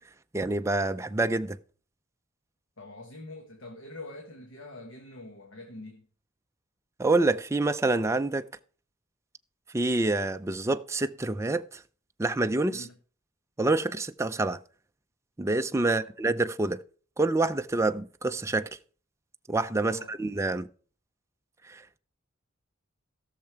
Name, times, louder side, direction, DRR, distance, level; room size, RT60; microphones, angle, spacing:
voice 1, 0.3-1.6 7.0-8.4 9.7-11.7 12.2-12.8 13.6-14.6 15.4-16.8 17.2-18.7 19.5-20.7 21.7-22.0, right 2 dB, 15° right, 0.4 m, -27 dB
voice 2, 2.8-6.1 12.7-12.9 15.8-16.1 19.8-20.1, left 2 dB, 70° left, 1.5 m, -44 dB
16.5 x 6.6 x 4.6 m
head